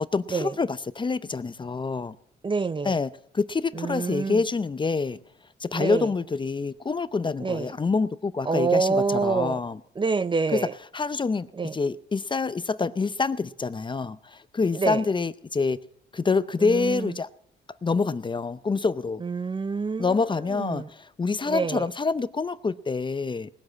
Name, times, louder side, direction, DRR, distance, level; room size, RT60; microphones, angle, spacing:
voice 1, 0.1-2.2 2.8-5.2 5.6-9.8 10.5-10.6 10.9-11.5 11.7-15.8 16.1-17.3 17.8-19.2 20.0-23.5, left 4 dB, 25° left, 0.6 m, -26 dB
voice 2, 2.4-2.9 3.7-4.4 5.7-6.1 7.4-7.7 8.5-9.6 10.0-10.7 11.6-11.8 14.7-15.0 16.6-17.1 19.2-20.1 20.5-20.9 21.5-21.8, right 4 dB, 25° right, 0.5 m, -26 dB
19.0 x 7.9 x 8.5 m
cardioid pair, 90°, 20 cm